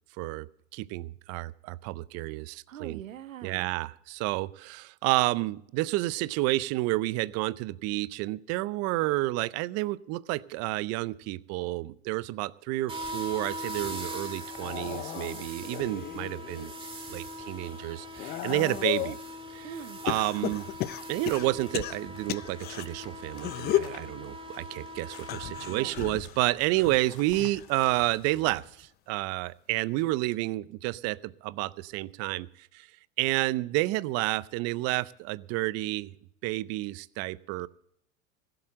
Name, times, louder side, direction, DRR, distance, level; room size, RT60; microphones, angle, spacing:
voice 1, 0.2-0.5 0.7-3.0 3.4-16.7 17.1-19.2 19.5-19.7 20.0-20.7 21.1-32.9 33.2-36.1 36.4-37.7, right 19 dB, 40° right, 19 dB, 0.6 m, -30 dB
voice 2, 2.7-3.7 19.6-20.0 25.6-26.1, right 11 dB, 85° right, 16 dB, 0.9 m, -43 dB
sound 1, 12.9-25.9, equal, 15° right, 1.8 m, -41 dB
sound 2, 14.4-16.7 17.2-19.2 20.1-22.9 23.4-24.0 25.2-28.1 28.4-28.8 30.0-30.1, left 14 dB, 25° left, 0.4 m, -35 dB
sound 3, 21.0-28.6, left 7 dB, 45° left, 3.5 m, -53 dB
15.5 x 7.9 x 7.6 m, 0.71 s
hypercardioid pair, 105°, 39 cm